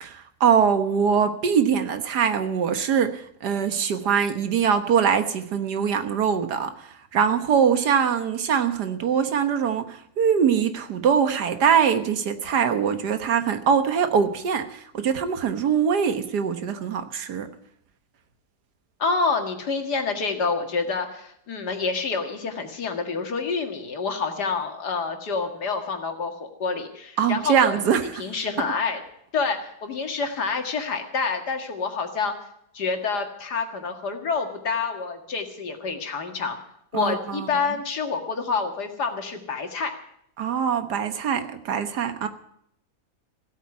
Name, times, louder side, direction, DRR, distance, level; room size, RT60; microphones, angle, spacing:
voice 1, 0.0-6.7 7.1-17.5 27.2-28.2 36.9-37.5 40.4-42.3, right 7 dB, 85° right, 9 dB, 1.8 m, -23 dB
voice 2, 19.0-27.8 28.2-29.0 29.3-32.3 32.7-36.6 36.9-39.9, left 4 dB, 85° left, 5 dB, 2.5 m, -27 dB
16.0 x 8.5 x 9.6 m, 0.74 s
omnidirectional pair, 1.7 m